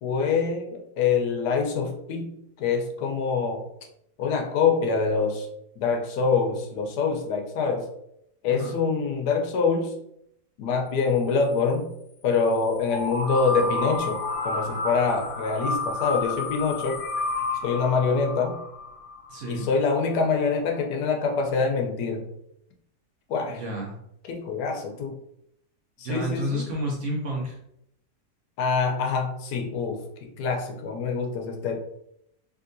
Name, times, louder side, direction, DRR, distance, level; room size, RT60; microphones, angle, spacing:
voice 1, 0.0-3.7 4.2-5.5 5.8-7.9 8.4-10.0 10.6-11.9 12.2-17.0 17.6-18.5 19.5-22.3 23.3-23.6 24.3-25.2 26.0-26.7 28.6-31.8, left 5 dB, 80° left, 3 dB, 1.2 m, -25 dB
sound 1, 12.9-19.7, left 3 dB, 55° left, 0.6 m, -30 dB
voice 2, 19.3-19.7 23.5-24.0 26.0-27.6, equal, 55° right, -2 dB, 0.9 m, -30 dB
3.6 x 2.7 x 2.6 m, 0.76 s
omnidirectional pair, 1.7 m